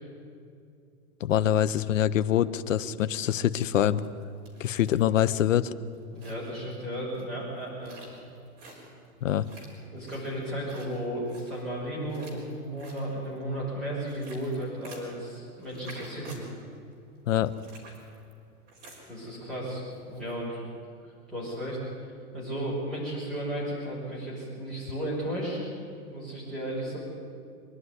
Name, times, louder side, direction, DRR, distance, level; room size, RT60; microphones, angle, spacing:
voice 1, 1.2-4.0 4.6-5.7 9.2-9.5 17.3-17.5, left 11 dB, 60° left, 15 dB, 0.9 m, -24 dB
sound 1, 4.0-20.3, right 2 dB, 20° right, 4.0 m, -52 dB
voice 2, 6.1-7.9 9.9-16.4 19.1-20.6 21.3-22.1 22.3-25.7 26.1-27.0, right 1 dB, ahead, -9 dB, 5.6 m, -34 dB
24.5 x 11.0 x 9.6 m, 2.4 s
hypercardioid pair, 175°, 44 cm